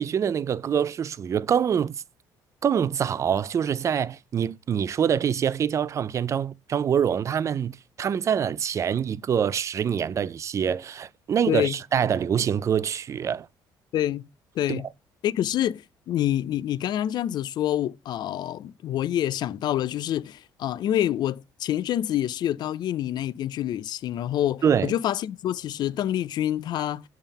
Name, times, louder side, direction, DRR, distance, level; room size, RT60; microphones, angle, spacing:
voice 1, 0.0-2.0 2.6-13.5 14.7-14.8 24.6-24.9, right 8 dB, 35° right, 0.4 m, -25 dB
voice 2, 11.5-11.8 13.9-14.3 14.6-14.9 15.2-27.0, left 11 dB, 60° left, 0.4 m, -27 dB
7.2 x 3.6 x 5.4 m
cardioid pair, 105°, 8 cm